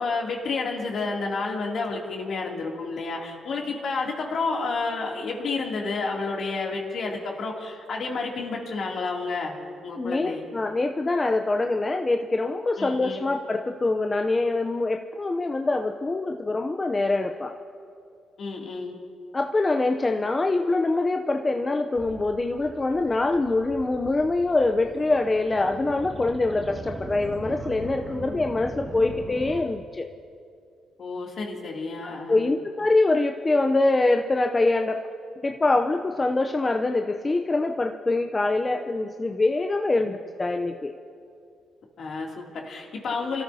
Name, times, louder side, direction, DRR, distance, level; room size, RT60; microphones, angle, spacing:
voice 1, 0.0-9.5 9.8-10.4 12.8-13.3 18.4-19.0 31.0-32.6 39.9-40.0 42.0-43.4, left 3 dB, 60° left, -1 dB, 2.7 m, -30 dB
voice 2, 10.0-17.5 19.3-30.1 32.3-35.0 35.4-40.9, left 2 dB, 25° left, 4 dB, 0.6 m, -24 dB
sound 1, 22.0-29.6, right 1 dB, 25° right, 2.1 m, -40 dB
29.0 x 13.0 x 2.8 m, 2.4 s
cardioid pair, 90°, 0 cm